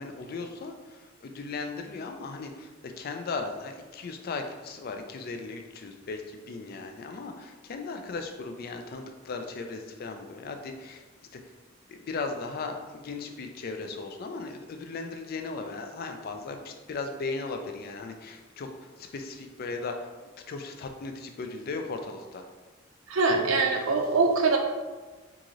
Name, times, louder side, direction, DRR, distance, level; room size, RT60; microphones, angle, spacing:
voice 1, 0.0-11.0 11.3-11.4 11.9-18.7 19.0-20.1 20.5-22.5, left 3 dB, 45° left, 5 dB, 0.3 m, -37 dB
voice 2, 23.1-24.6, right 3 dB, 70° right, 3 dB, 0.5 m, -23 dB
3.7 x 2.5 x 3.0 m, 1.3 s
head